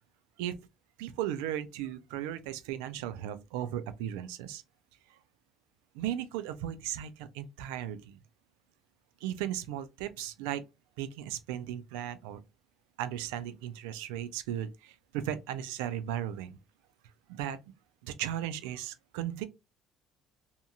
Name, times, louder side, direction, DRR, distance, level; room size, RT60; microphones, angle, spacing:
voice 1, 1.0-4.6 5.1-5.2 5.9-8.2 9.2-10.6 11.0-12.4 13.0-16.6 17.3-17.6 18.0-19.5, right 11 dB, 85° right, 0.4 m, -36 dB
2.7 x 2.6 x 2.3 m
supercardioid pair, 80°, 0 cm